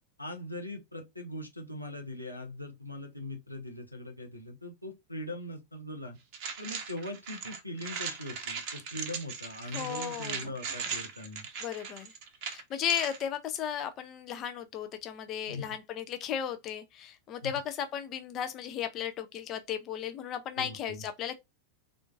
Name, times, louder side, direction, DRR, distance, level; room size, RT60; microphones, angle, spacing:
voice 1, 0.2-6.2 6.6-11.5 15.5-15.8 17.4-17.5 20.6-21.0, left 1 dB, 90° left, 0.7 m, -41 dB
sound 1, 6.3-13.2, right 6 dB, 45° right, 0.6 m, -39 dB
voice 2, 9.7-10.4 11.6-12.2 12.4-21.4, left 9 dB, 35° left, 0.4 m, -35 dB
3.7 x 2.5 x 2.3 m
figure-of-eight pair, 90°, 0 cm